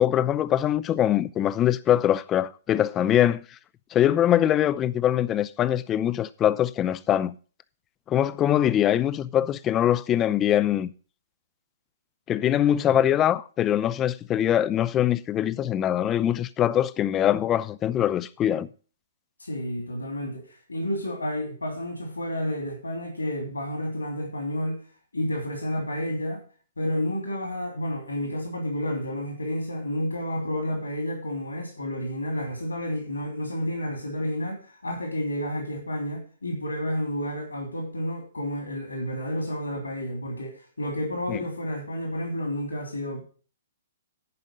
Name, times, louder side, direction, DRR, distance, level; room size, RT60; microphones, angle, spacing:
voice 1, 0.0-3.4 3.9-7.3 8.1-10.9 12.3-18.7 41.3-41.4, left 11 dB, 20° left, 0.5 m, -23 dB
voice 2, 19.4-24.8 25.1-26.4 26.8-43.3, left 1 dB, 75° left, 2.9 m, -30 dB
11.0 x 5.3 x 6.7 m
figure-of-eight pair, 115°, 0 cm